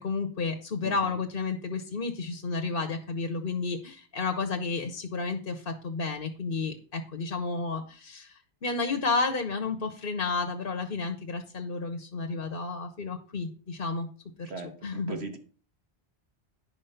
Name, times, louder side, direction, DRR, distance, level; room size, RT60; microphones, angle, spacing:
voice 1, 0.0-14.1 14.4-14.5 14.8-15.2, left 4 dB, 55° left, 6 dB, 1.1 m, -31 dB
voice 2, 0.8-1.2 14.4-15.4, right 4 dB, 70° right, 6 dB, 1.7 m, -38 dB
10.5 x 5.2 x 5.7 m, 0.39 s
omnidirectional pair, 1.2 m